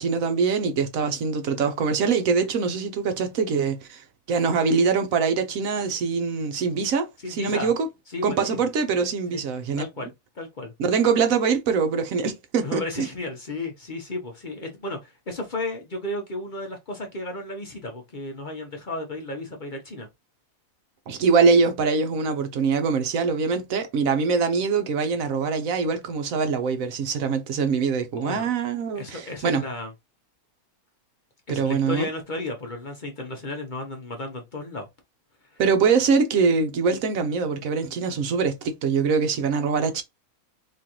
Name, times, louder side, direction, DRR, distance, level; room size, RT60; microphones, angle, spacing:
voice 1, 0.0-7.9 8.2-10.1 10.8-13.1 21.1-29.6 31.5-32.1 35.6-40.0, right 5 dB, 70° right, 1.1 m, -23 dB
voice 2, 7.2-7.7 8.1-8.6 9.3-9.4 9.8-10.7 12.6-20.1 28.2-28.5 29.0-29.9 31.5-34.9 35.5-35.6, left 2 dB, 40° left, 0.7 m, -33 dB
3.7 x 3.0 x 2.9 m
omnidirectional pair, 1.6 m